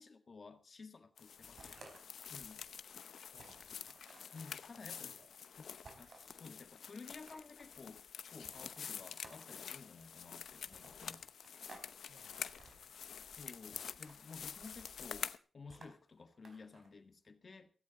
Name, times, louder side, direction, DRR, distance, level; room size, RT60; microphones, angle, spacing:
voice 1, 0.0-1.8 2.3-2.6 4.3-5.1 6.0-11.2 13.4-17.7, left 4 dB, 45° left, 1.6 m, -54 dB
sound 1, 1.2-15.4, left 7 dB, 85° left, 0.7 m, -48 dB
sound 2, 1.6-2.5 2.9-3.0 3.3-4.5 5.8-6.4 7.0-7.7 8.4-9.7 10.7-11.9 12.2-12.8 13.7-14.2 14.5-15.1 15.7-16.9, right 3 dB, 55° right, 4.3 m, -59 dB
voice 2, 3.2-4.0 4.7-5.3 5.8-6.0 11.0-11.3 12.0-12.9, right 3 dB, 80° right, 4.9 m, -69 dB
16.5 x 15.5 x 4.0 m
wide cardioid pair, 120°, 0 cm